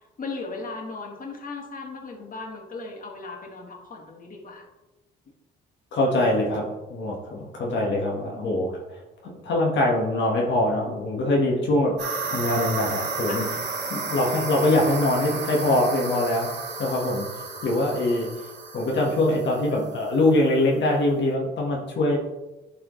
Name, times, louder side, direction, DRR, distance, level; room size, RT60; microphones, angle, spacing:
voice 1, 0.0-4.7 13.3-13.4, left 3 dB, 45° left, 1 dB, 1.8 m, -37 dB
voice 2, 5.9-6.6 6.9-13.4 13.9-16.5 16.8-17.3 17.6-18.3 18.7-22.2, left 1 dB, 65° left, -2 dB, 1.6 m, -23 dB
sound 1, 12.0-20.2, right 4 dB, 60° right, 2.1 m, -33 dB
11.5 x 4.7 x 3.2 m, 1.1 s
cardioid pair, 90°, 20 cm